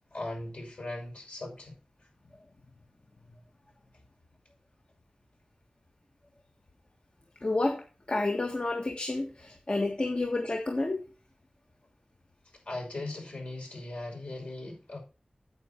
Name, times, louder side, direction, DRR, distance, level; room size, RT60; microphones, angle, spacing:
voice 1, 0.1-1.8 12.7-15.0, left 2 dB, 70° left, 6.0 m, -38 dB
voice 2, 7.4-7.8 8.1-11.0, left 2 dB, 50° left, 1.6 m, -30 dB
9.0 x 8.3 x 4.3 m
wide cardioid pair, 55°, 2 cm